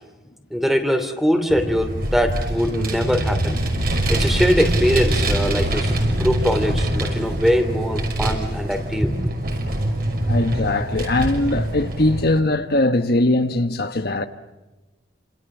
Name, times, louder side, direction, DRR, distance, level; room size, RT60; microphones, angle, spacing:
voice 1, 0.5-3.6 4.1-9.3, equal, ahead, 2.7 m, -22 dB
Vehicle, 1.5-12.4, right 1 dB, 50° right, 5.9 m, -24 dB
voice 2, 10.3-14.3, left 2 dB, 55° left, 1.2 m, -20 dB
29.0 x 27.5 x 7.2 m
head